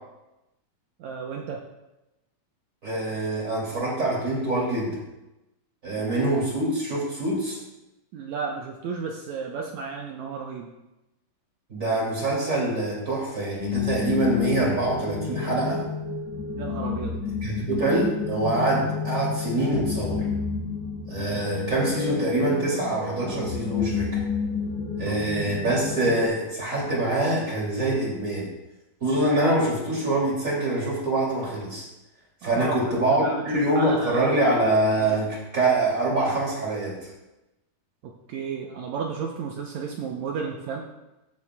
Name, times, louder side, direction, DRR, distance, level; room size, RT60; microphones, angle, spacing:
voice 1, 1.0-1.6 8.1-10.7 16.6-17.2 21.1-21.5 25.0-25.6 32.4-34.4 38.0-40.8, right 5 dB, 85° right, 0 dB, 1.6 m, -33 dB
voice 2, 2.8-5.0 5.8-7.6 11.7-15.8 17.4-20.3 21.1-24.2 25.0-28.5 29.0-31.9 32.4-37.1, right 2 dB, 25° right, -3 dB, 2.3 m, -25 dB
sound 1, 13.5-26.3, left 6 dB, 65° left, 1.5 m, -30 dB
15.0 x 7.3 x 2.2 m, 0.97 s
omnidirectional pair, 4.2 m